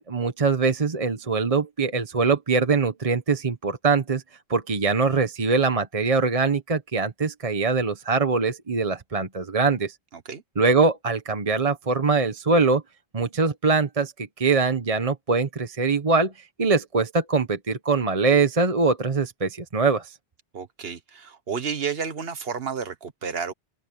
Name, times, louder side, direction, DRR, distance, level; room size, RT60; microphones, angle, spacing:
voice 1, 0.0-4.2 4.5-10.0 10.6-12.8 13.1-16.3 16.6-20.1, right 4 dB, 35° right, 1.0 m, -23 dB
voice 2, 20.5-23.5, right 6 dB, 60° right, 1.5 m, -31 dB
open air
omnidirectional pair, 1.1 m